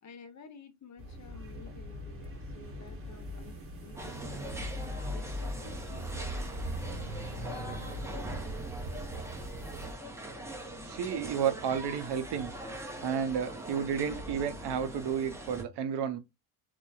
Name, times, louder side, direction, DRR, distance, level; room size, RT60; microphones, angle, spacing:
voice 1, 0.0-4.7 5.1-6.8 7.1-8.4, left 5 dB, 35° left, 0.8 m, -53 dB
sound 1, 1.0-9.9, equal, 30° right, 0.9 m, -40 dB
sound 2, 4.0-15.6, right 1 dB, 5° right, 0.6 m, -42 dB
voice 2, 10.8-16.2, right 7 dB, 60° right, 0.7 m, -32 dB
3.0 x 2.1 x 2.2 m
supercardioid pair, 70°, 48 cm